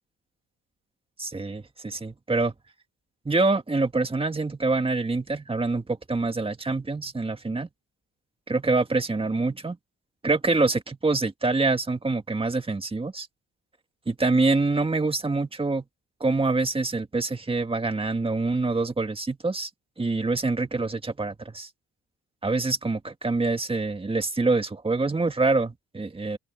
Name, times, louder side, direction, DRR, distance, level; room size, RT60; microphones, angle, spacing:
voice 1, 1.2-2.5 3.3-7.7 8.5-9.8 10.2-13.3 14.1-15.8 16.2-19.7 20.0-21.7 22.4-26.4, right 3 dB, 20° right, 1.9 m, -25 dB
cardioid pair, 90°, 30 cm